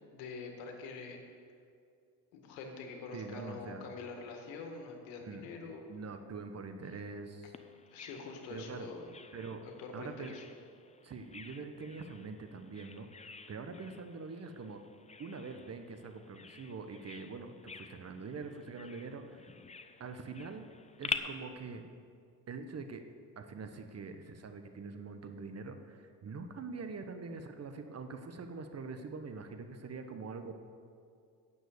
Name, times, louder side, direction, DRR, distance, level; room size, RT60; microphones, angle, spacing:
voice 1, 0.1-1.2 2.3-5.8 6.9-7.0 7.9-9.1 9.6-10.4, left 4 dB, 70° left, 3 dB, 2.0 m, -45 dB
voice 2, 3.1-3.9 5.2-5.5 5.9-7.5 8.5-8.9 9.3-9.6 9.9-10.4 11.0-14.8 15.2-19.5 20.0-20.7 21.0-21.8 22.5-23.0 23.4-30.5, right 4 dB, 35° right, 7 dB, 1.1 m, -44 dB
Bird vocalization bird call bird song, 7.5-21.2, left 5 dB, 15° left, 0.7 m, -47 dB
9.2 x 7.6 x 8.3 m, 2.3 s
hypercardioid pair, 65°, 46 cm